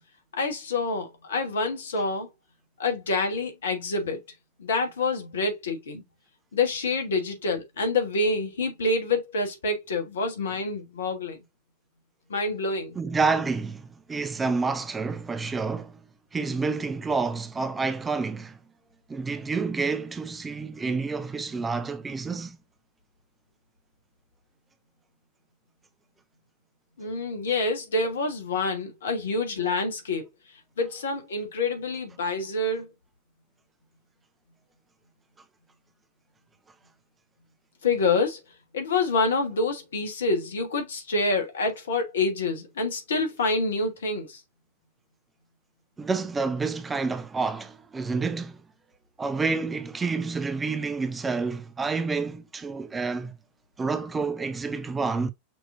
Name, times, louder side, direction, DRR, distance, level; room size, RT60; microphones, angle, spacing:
voice 1, 0.3-2.3 2.8-4.2 4.6-6.0 6.5-11.4 12.3-12.9 27.0-30.3 30.8-32.9 37.8-38.4 38.7-44.4, left 3 dB, 65° left, 1.4 m, -27 dB
voice 2, 13.0-16.0 16.3-18.6 19.1-22.6 46.0-48.6 49.2-53.4 53.8-55.3, right 4 dB, 15° right, 0.5 m, -29 dB
6.1 x 3.1 x 2.6 m
figure-of-eight pair, 90°, 0 cm